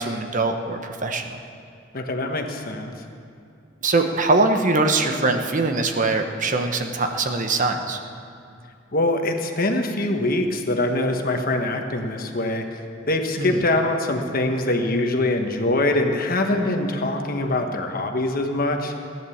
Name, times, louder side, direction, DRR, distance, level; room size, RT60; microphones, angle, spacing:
voice 1, 0.0-1.4 3.8-8.0 13.4-13.6, right 3 dB, 45° right, 5 dB, 1.0 m, -22 dB
voice 2, 1.9-2.9 8.9-12.8 13.1-18.9, left 2 dB, 50° left, 4 dB, 1.3 m, -23 dB
15.5 x 10.5 x 7.1 m, 2.5 s
head